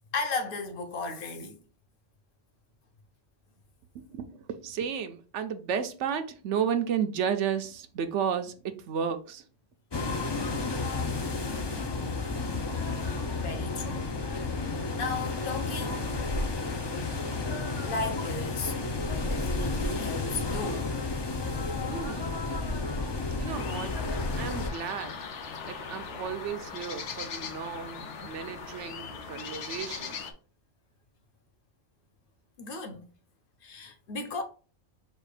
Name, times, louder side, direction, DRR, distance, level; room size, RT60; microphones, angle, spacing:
voice 1, 0.1-1.6 13.4-14.1 15.0-16.3 17.8-18.8 19.2-20.9 32.6-33.1 33.6-34.4, left 3 dB, 55° left, 0.9 m, -35 dB
voice 2, 3.9-9.4 21.9-22.5 23.4-23.9 24.4-25.1 25.7-30.3, right 7 dB, 85° right, 1.0 m, -33 dB
sound 1, 9.9-24.7, left 3 dB, 35° left, 0.4 m, -31 dB
sound 2, 23.5-30.3, left 6 dB, 85° left, 1.0 m, -39 dB
4.2 x 2.5 x 4.8 m
omnidirectional pair, 1.2 m